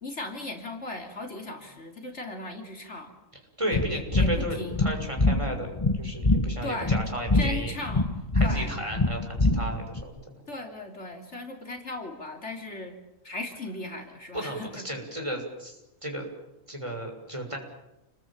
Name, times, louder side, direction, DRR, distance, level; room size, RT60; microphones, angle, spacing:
voice 1, 0.0-3.1 3.7-4.9 6.6-7.0 7.3-8.7 10.5-13.0 13.2-14.8, left 2 dB, 55° left, 3 dB, 3.7 m, -37 dB
voice 2, 3.6-7.8 8.3-10.2 14.3-16.3 16.7-17.6, right 1 dB, 20° right, 2 dB, 6.7 m, -34 dB
sound 1, 3.7-10.0, left 2 dB, 20° left, 1.6 m, -25 dB
30.0 x 22.0 x 8.9 m, 0.96 s
omnidirectional pair, 1.4 m